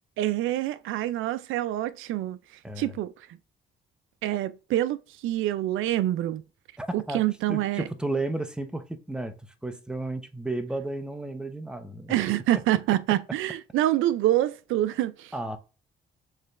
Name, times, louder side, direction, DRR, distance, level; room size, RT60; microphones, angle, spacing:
voice 1, 0.2-2.4 2.8-3.1 4.2-6.4 6.9-7.8 12.1-15.3, right 14 dB, 85° right, 0.4 m, -26 dB
voice 2, 2.6-3.0 6.8-7.2 7.5-12.2 15.3-15.6, right 2 dB, 5° right, 0.8 m, -33 dB
6.5 x 3.2 x 2.4 m
cardioid pair, 90°, 20 cm